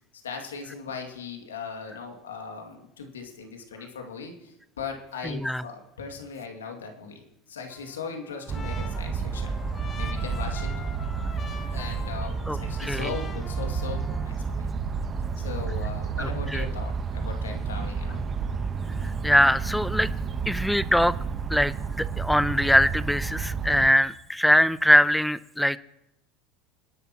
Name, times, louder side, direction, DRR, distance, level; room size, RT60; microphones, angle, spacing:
voice 1, 0.2-9.6 10.0-10.7 11.7-14.7 15.4-18.3, left 5 dB, 85° left, 3 dB, 2.3 m, -38 dB
voice 2, 5.2-5.6 12.5-13.1 16.2-16.6 19.2-20.1 20.5-21.1 21.5-25.8, equal, ahead, 17 dB, 0.6 m, -22 dB
Trumpet, 7.7-14.4, left 6 dB, 35° left, 1.6 m, -44 dB
sound 1, 8.5-23.9, right 5 dB, 30° right, 1.1 m, -30 dB
27.5 x 11.0 x 3.0 m, 0.86 s
hypercardioid pair, 80°, 0 cm